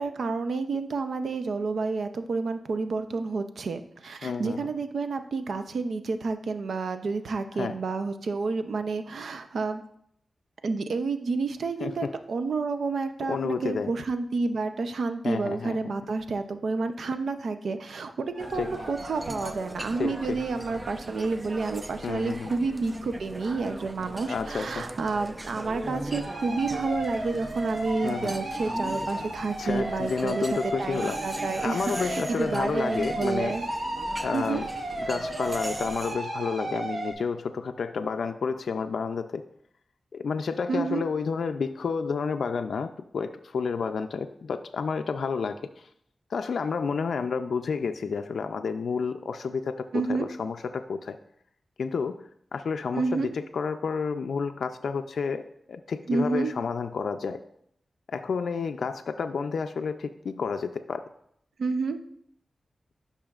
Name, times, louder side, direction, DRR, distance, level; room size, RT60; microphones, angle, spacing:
voice 1, 0.0-9.8 10.6-33.6 34.3-34.6 40.7-41.1 49.9-50.3 52.9-53.3 56.1-56.5 61.6-62.0, right 4 dB, 80° right, 8 dB, 0.6 m, -30 dB
voice 2, 4.2-4.7 7.5-7.7 11.8-12.1 13.3-13.9 15.2-15.8 18.5-18.7 20.0-20.4 22.0-22.5 24.3-24.9 28.0-28.4 29.6-31.2 31.6-33.6 34.2-34.6 35.0-39.4 40.1-45.9 46.3-51.2 51.8-55.4 55.7-57.4 58.1-61.0, left 5 dB, 85° left, 6 dB, 0.4 m, -30 dB
sound 1, 18.3-19.8 25.9-37.1, right 1 dB, 65° right, 2.4 m, -34 dB
sound 2, 18.4-36.2, right 1 dB, 30° right, 0.6 m, -39 dB
12.5 x 5.6 x 2.4 m, 0.70 s
cardioid pair, 50°, 0 cm